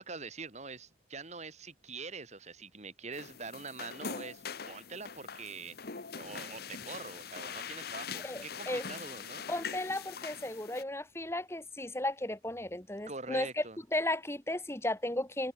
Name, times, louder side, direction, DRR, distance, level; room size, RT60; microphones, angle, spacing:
voice 1, 0.0-9.5 13.1-13.8, right 4 dB, 35° right, 2.6 m, -44 dB
sound 1, 3.1-10.8, left 6 dB, 55° left, 1.1 m, -43 dB
voice 2, 8.2-8.9 9.5-13.6 13.9-15.5, left 1 dB, 15° left, 2.1 m, -34 dB
head